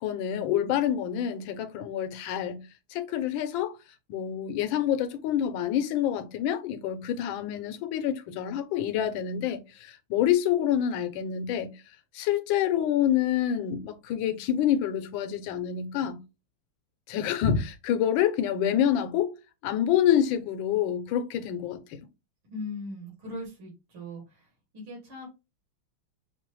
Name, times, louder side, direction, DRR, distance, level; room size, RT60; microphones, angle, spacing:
voice 1, 0.0-2.6 2.9-3.8 4.1-11.7 12.1-16.2 17.1-19.4 19.6-22.0, left 10 dB, 75° left, 1.3 m, -27 dB
voice 2, 22.5-24.5 24.7-25.3, left 1 dB, 70° right, 2.7 m, -39 dB
5.8 x 2.0 x 3.0 m
omnidirectional pair, 2.3 m